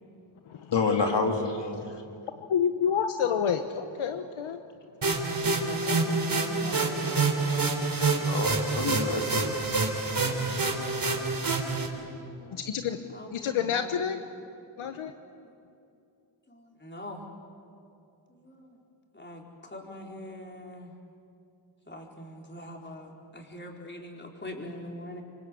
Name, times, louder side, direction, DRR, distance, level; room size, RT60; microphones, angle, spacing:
voice 1, 0.7-2.0 8.0-9.6 9.9-10.1, left 4 dB, 60° left, 2 dB, 2.7 m, -29 dB
voice 2, 2.4-4.6 12.5-13.0 13.3-14.2 14.8-15.1, left 7 dB, 75° left, 7 dB, 1.2 m, -28 dB
sound 1, 5.0-11.9, right 3 dB, 45° right, 3.9 m, -27 dB
voice 3, 5.3-7.8 11.6-12.6 13.1-14.2 15.4-15.5 16.5-17.3 18.3-18.8 19.1-20.9 21.9-25.2, left 1 dB, 20° left, 0 dB, 4.5 m, -43 dB
27.0 x 24.5 x 8.4 m, 2.6 s
cardioid pair, 80°, 48 cm